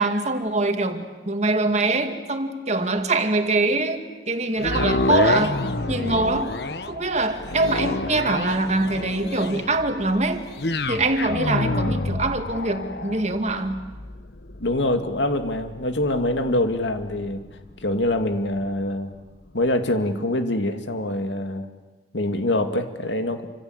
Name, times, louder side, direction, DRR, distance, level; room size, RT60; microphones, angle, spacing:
voice 1, 0.0-5.6 5.9-6.6 6.9-10.5 10.9-13.8, right 2 dB, 40° right, 6 dB, 2.2 m, -23 dB
sound 1, 4.6-18.8 19.3-19.4, left 2 dB, 65° left, 1.2 m, -29 dB
voice 2, 14.6-17.4 17.8-19.1 19.5-21.7 22.1-23.5, left 1 dB, 90° left, 7 dB, 2.3 m, -24 dB
28.5 x 26.0 x 8.0 m, 1.3 s
head